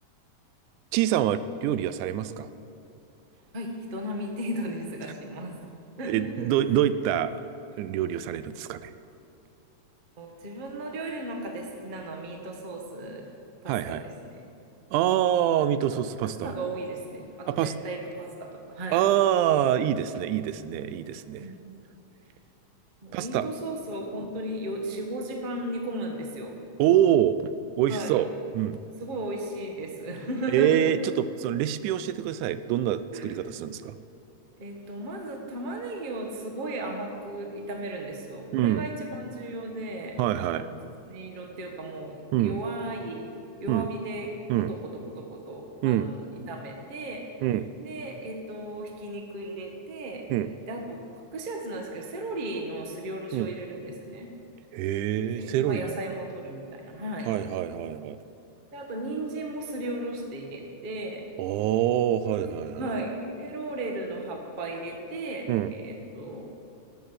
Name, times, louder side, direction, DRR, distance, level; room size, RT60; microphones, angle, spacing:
voice 1, 0.9-2.5 6.0-7.4 7.8-8.9 13.7-14.0 14.9-16.5 17.5-17.7 18.9-21.5 23.1-23.5 26.8-27.5 27.8-28.3 28.5-28.8 30.5-33.9 38.5-38.9 40.2-40.7 42.3-42.6 43.7-43.9 44.5-44.7 45.8-46.1 47.4-47.7 50.3-50.5 53.3-53.5 54.7-56.0 57.3-58.2 61.4-62.9 65.5-65.7, right 11 dB, 85° right, 13 dB, 2.0 m, -25 dB
voice 2, 3.5-5.6 6.0-6.5 10.2-13.3 13.6-14.4 16.4-19.0 21.4-21.6 23.0-26.6 27.9-28.2 29.0-30.7 33.1-33.2 34.6-40.7 41.1-43.3 43.6-44.4 44.7-44.8 45.1-47.2 47.8-50.2 50.7-51.0 51.3-54.3 55.2-57.3 58.7-61.2 62.3-66.5, right 1 dB, 70° right, 2 dB, 0.4 m, -35 dB
13.0 x 7.6 x 7.3 m, 2.8 s
omnidirectional pair, 3.4 m